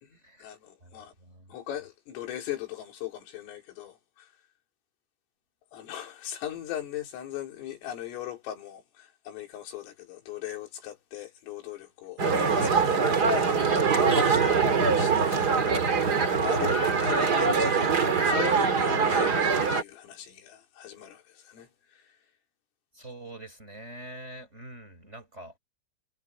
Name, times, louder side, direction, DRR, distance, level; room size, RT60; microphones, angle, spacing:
voice 1, 0.0-1.1 1.5-4.3 5.7-14.6 14.9-22.0, left 12 dB, 85° left, 6.2 m, -39 dB
voice 2, 1.2-1.5 22.9-25.5, right 1 dB, 15° right, 4.1 m, -44 dB
sound 1, 12.2-19.8, right 5 dB, 80° right, 0.9 m, -23 dB
omnidirectional pair, 5.7 m